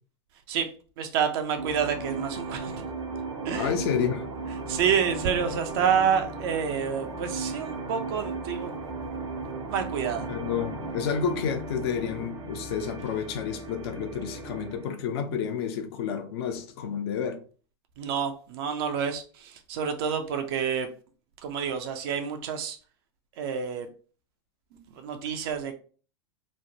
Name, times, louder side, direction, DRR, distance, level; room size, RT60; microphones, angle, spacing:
voice 1, 0.5-2.8 3.4-3.7 4.7-8.7 9.7-10.3 18.0-20.9 21.4-22.8 23.4-23.9 24.9-25.7, right 7 dB, 55° right, 0.5 m, -28 dB
sound 1, 1.6-14.9, right 3 dB, 80° right, 0.8 m, -36 dB
voice 2, 3.5-4.3 10.3-17.4, left 7 dB, 60° left, 0.5 m, -30 dB
3.1 x 2.1 x 2.7 m
hypercardioid pair, 95°, 15 cm